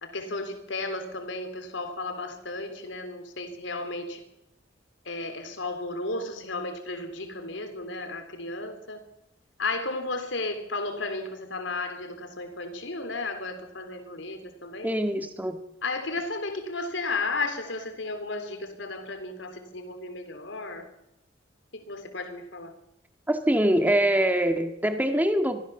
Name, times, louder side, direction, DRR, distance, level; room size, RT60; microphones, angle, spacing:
voice 1, 0.0-4.2 5.1-9.0 9.6-14.9 15.8-20.9 21.7-22.7, left 3 dB, 85° left, 3.6 m, -34 dB
voice 2, 14.8-15.6 23.3-25.6, right 1 dB, 10° right, 2.0 m, -24 dB
24.0 x 16.0 x 7.1 m
head